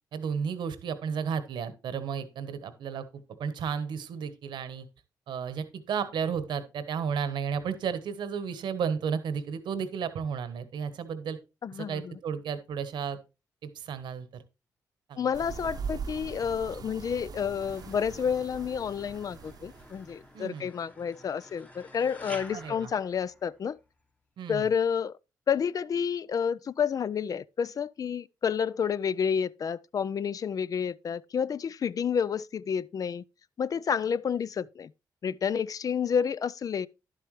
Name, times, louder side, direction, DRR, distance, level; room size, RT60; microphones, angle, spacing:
voice 1, 0.1-3.0 3.4-4.9 5.3-11.4 11.7-13.2 13.6-14.4 15.1-15.3 20.3-20.7 22.5-22.9 24.4-24.7, right 6 dB, 80° right, 1.2 m, -33 dB
voice 2, 11.6-12.2 15.2-23.8 24.5-25.1 25.5-33.2 33.6-34.9 35.2-36.9, left 7 dB, 50° left, 0.4 m, -30 dB
sound 1, 15.3-20.3, right 6 dB, 60° right, 0.8 m, -41 dB
sound 2, 17.6-23.9, left 1 dB, 20° left, 1.2 m, -50 dB
11.0 x 7.7 x 3.2 m
cardioid pair, 75°, 8 cm